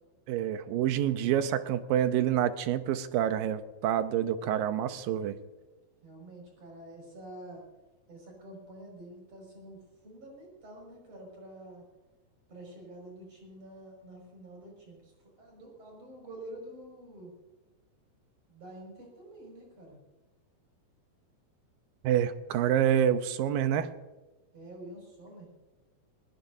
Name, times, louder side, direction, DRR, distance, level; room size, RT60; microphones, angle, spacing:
voice 1, 0.3-5.4 22.0-23.9, right 10 dB, 80° right, 10 dB, 2.5 m, -27 dB
voice 2, 6.0-7.6 8.1-11.8 12.5-17.3 18.5-20.0 24.5-25.5, right 1 dB, 45° right, 0 dB, 6.9 m, -48 dB
20.0 x 19.0 x 2.7 m, 1.1 s
omnidirectional pair, 4.2 m